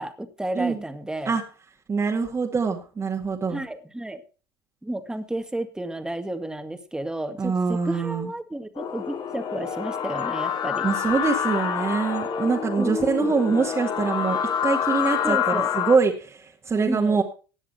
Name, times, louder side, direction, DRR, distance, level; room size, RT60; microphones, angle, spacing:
voice 1, 0.0-1.4 3.5-4.2 4.8-10.9 12.8-13.7 15.2-15.7 16.8-17.2, right 1 dB, 5° right, 8 dB, 2.1 m, -32 dB
voice 2, 1.9-3.6 7.4-8.3 10.8-17.2, right 4 dB, 25° right, 0 dB, 2.2 m, -24 dB
sound 1, 8.8-16.0, left 8 dB, 45° left, 2.8 m, -27 dB
16.5 x 10.0 x 4.5 m, 0.36 s
hypercardioid pair, 85°, 11 cm